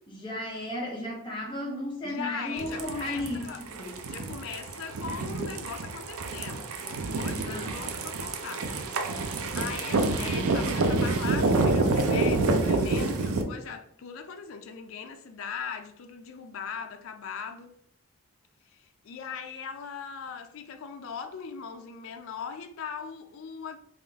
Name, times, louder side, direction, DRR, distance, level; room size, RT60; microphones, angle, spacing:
voice 1, 0.1-4.0 7.4-7.8, left 1 dB, 25° left, 0.8 m, -34 dB
voice 2, 2.0-3.6 4.1-8.7 8.9-9.1 9.5-17.7 18.7-23.8, left 6 dB, 70° left, 0.4 m, -39 dB
sound 1, 2.6-13.4, right 3 dB, 85° right, 0.5 m, -28 dB
3.6 x 2.5 x 3.4 m
head